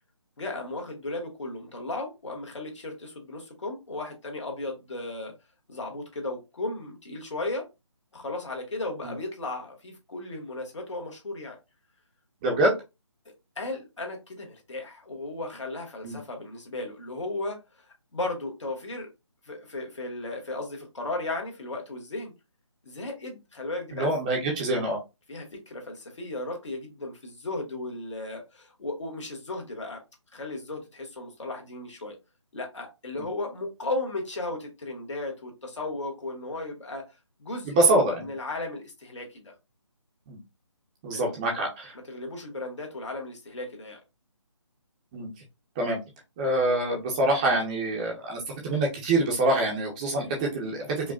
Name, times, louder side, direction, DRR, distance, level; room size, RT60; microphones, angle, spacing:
voice 1, 0.4-5.3 5.7-7.7 8.1-11.6 13.2-17.6 18.1-19.1 19.4-22.3 22.8-24.1 25.3-30.0 30.3-32.2 32.5-37.1 37.4-39.5 41.1-41.2 42.1-44.0, left 2 dB, 70° left, 1 dB, 1.7 m, -35 dB
voice 2, 12.4-12.7 16.0-16.2 23.9-25.0 37.7-38.3 40.3-40.4 41.0-41.9 45.1-45.3 45.8-46.0 46.4-48.4 48.6-51.1, right 2 dB, 15° right, -1 dB, 0.8 m, -25 dB
5.0 x 2.4 x 2.4 m, 0.24 s
figure-of-eight pair, 160°, 16 cm